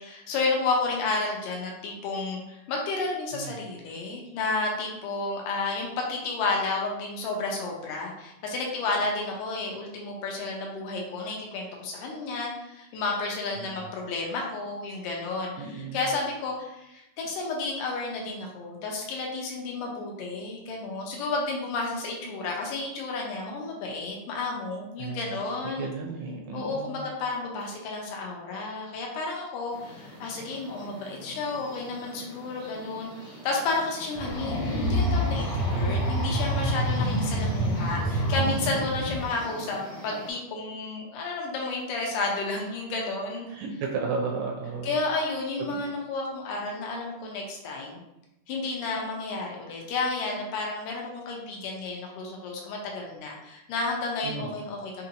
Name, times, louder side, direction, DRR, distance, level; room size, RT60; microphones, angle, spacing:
voice 1, 0.0-25.9 26.5-43.5 44.8-48.0 48.5-55.1, left 3 dB, 85° left, -1 dB, 2.4 m, -31 dB
voice 2, 15.6-16.1 25.0-25.3 25.6-27.1 35.7-36.2 38.5-39.1 43.5-45.0 45.6-45.8 54.2-54.5, right 4 dB, 80° right, 1 dB, 1.7 m, -34 dB
sound 1, 29.7-40.3, right 1 dB, 60° right, 0.7 m, -44 dB
sound 2, 34.2-39.2, equal, 70° left, 2.0 m, -27 dB
6.1 x 2.8 x 2.7 m, 0.91 s
omnidirectional pair, 3.7 m